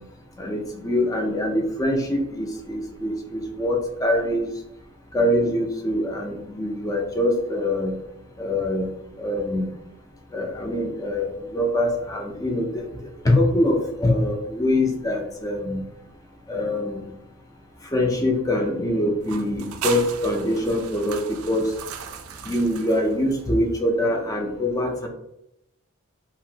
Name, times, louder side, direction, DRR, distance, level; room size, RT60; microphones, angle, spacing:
voice 1, 0.4-4.5 5.1-7.9 8.4-8.9 9.2-9.7 10.3-12.7 13.2-15.8 16.5-17.1 17.9-21.7 22.5-25.1, left 1 dB, 15° left, 1 dB, 0.4 m, -24 dB
sound 1, 19.2-23.8, right 7 dB, 80° right, 0.3 m, -37 dB
2.9 x 2.5 x 2.7 m, 0.85 s
head